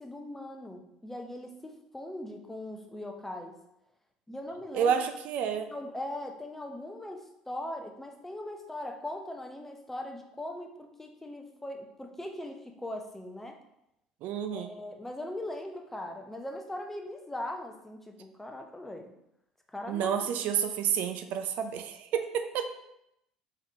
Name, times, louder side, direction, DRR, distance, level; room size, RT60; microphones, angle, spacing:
voice 1, 0.0-3.5 4.3-5.0 5.7-13.6 14.5-19.1 19.7-20.3, left 1 dB, 10° left, 4 dB, 0.6 m, -40 dB
voice 2, 4.7-5.7 14.2-14.7 19.9-22.7, right 8 dB, 55° right, 8 dB, 0.4 m, -29 dB
3.7 x 3.6 x 2.7 m, 0.82 s
figure-of-eight pair, 60°, 3 cm